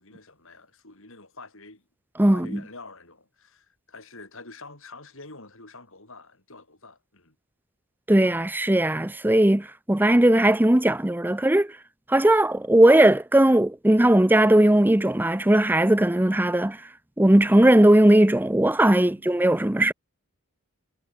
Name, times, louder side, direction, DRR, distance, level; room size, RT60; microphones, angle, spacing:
voice 1, 0.0-1.8 2.3-7.4 19.1-19.3, left 3 dB, 60° left, 7.2 m, -46 dB
voice 2, 2.2-2.5 8.1-11.7 12.1-16.8 17.2-19.9, right 1 dB, 10° right, 0.6 m, -18 dB
head